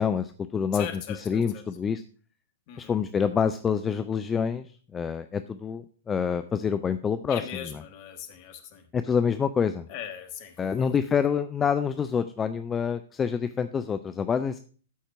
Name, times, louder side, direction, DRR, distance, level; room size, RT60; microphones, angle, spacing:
voice 1, 0.0-0.9 1.3-2.0 2.8-4.7 4.9-7.4 8.9-9.8 10.6-14.6, left 7 dB, 15° left, 11 dB, 0.4 m, -27 dB
voice 2, 0.7-1.6 2.7-3.0 7.3-8.9 9.9-10.9, left 9 dB, 35° left, 8 dB, 1.3 m, -39 dB
13.0 x 4.4 x 4.7 m, 0.41 s
figure-of-eight pair, 110°, 0 cm